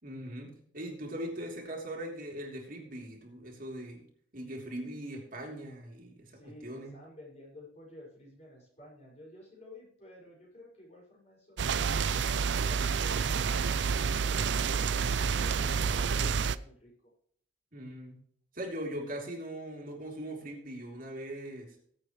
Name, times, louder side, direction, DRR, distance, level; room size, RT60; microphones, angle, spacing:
voice 1, 0.0-4.0 4.3-7.0 17.7-18.2 18.5-21.7, right 1 dB, 50° right, 0 dB, 3.1 m, -40 dB
voice 2, 6.4-16.9, left 1 dB, 35° left, -3 dB, 5.9 m, -53 dB
sound 1, 11.6-16.6, right 6 dB, 75° right, 0.5 m, -29 dB
20.5 x 8.2 x 3.2 m, 0.62 s
head